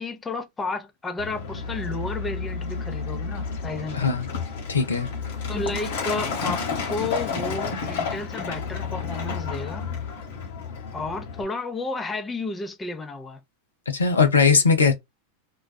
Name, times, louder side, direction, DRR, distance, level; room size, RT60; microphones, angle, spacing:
voice 1, 0.0-4.1 5.5-9.9 10.9-13.4, left 3 dB, 15° left, 0.5 m, -32 dB
Truck, 1.2-11.4, left 5 dB, 60° left, 1.0 m, -31 dB
voice 2, 3.9-4.3 4.7-5.1 13.9-14.9, left 5 dB, 80° left, 0.6 m, -19 dB
2.5 x 2.2 x 2.3 m
figure-of-eight pair, 90°, 0 cm